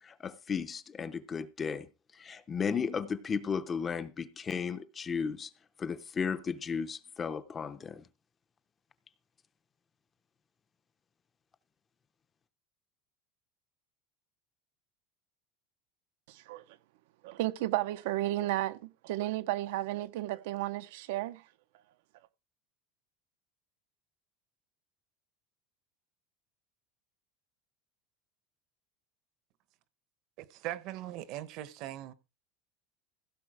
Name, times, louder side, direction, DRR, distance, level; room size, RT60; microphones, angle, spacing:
voice 1, 0.0-5.5 5.8-8.1, left 6 dB, 15° left, 0.6 m, -35 dB
voice 2, 16.3-16.6 17.2-21.4, right 15 dB, 80° right, 0.8 m, -33 dB
voice 3, 30.4-32.1, right 14 dB, 45° right, 0.9 m, -40 dB
16.0 x 7.1 x 4.8 m
cardioid pair, 180°, 0 cm